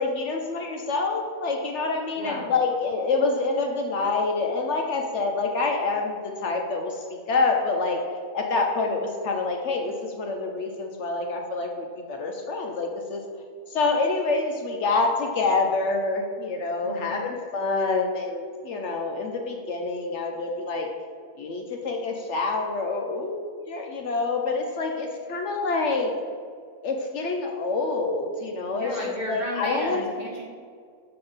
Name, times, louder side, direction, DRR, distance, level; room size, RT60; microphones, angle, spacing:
voice 1, 0.0-8.0 8.3-13.2 13.7-20.9 21.4-26.1 26.8-30.1, left 3 dB, 65° left, 2 dB, 0.7 m, -27 dB
voice 2, 28.7-30.4, equal, 40° right, -4 dB, 1.2 m, -34 dB
6.7 x 3.7 x 3.9 m, 2.1 s
omnidirectional pair, 1.6 m